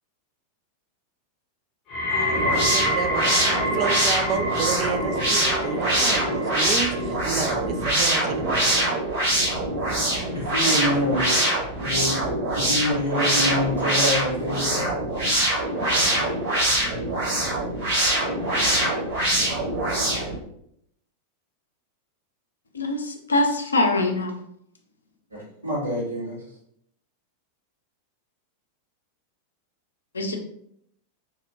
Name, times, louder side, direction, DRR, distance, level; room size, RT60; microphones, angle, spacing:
sound 1, 1.9-13.0 13.3-13.9 14.6-14.7, equal, 30° left, 0.7 m, -30 dB
voice 1, 2.1-3.3 3.7-8.7, right 6 dB, 35° right, 7 dB, 0.3 m, -30 dB
sound 2, 2.3-20.4, right 1 dB, 55° right, 1.5 m, -24 dB
voice 2, 10.3-11.4 11.8-12.2 12.5-14.9 25.3-26.4, left 1 dB, 80° right, -6 dB, 1.4 m, -26 dB
voice 3, 22.7-24.3 30.1-30.4, left 2 dB, 75° left, 4 dB, 0.5 m, -23 dB
2.8 x 2.8 x 2.6 m, 0.71 s
figure-of-eight pair, 90°, 0 cm